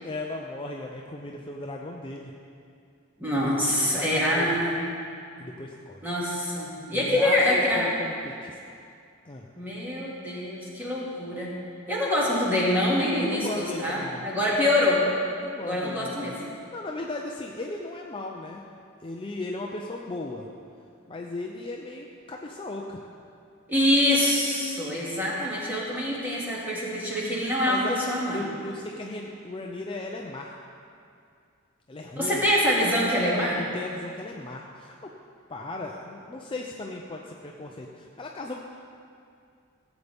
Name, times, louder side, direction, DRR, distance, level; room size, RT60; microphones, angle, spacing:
voice 1, 0.0-2.3 3.8-4.5 5.4-6.1 6.9-8.6 9.2-9.5 13.2-14.3 15.4-16.3 16.7-18.6 19.0-20.5 21.1-23.1 27.6-28.0 28.3-30.5 31.9-32.4 33.6-35.1 35.5-38.5, left 2 dB, 25° left, 0 dB, 0.5 m, -36 dB
voice 2, 3.2-4.8 6.0-7.9 9.6-11.5 11.9-15.0 15.6-16.3 23.7-28.4 32.2-33.6, left 1 dB, 10° right, -7 dB, 2.3 m, -25 dB
16.0 x 8.2 x 3.5 m, 2.4 s
head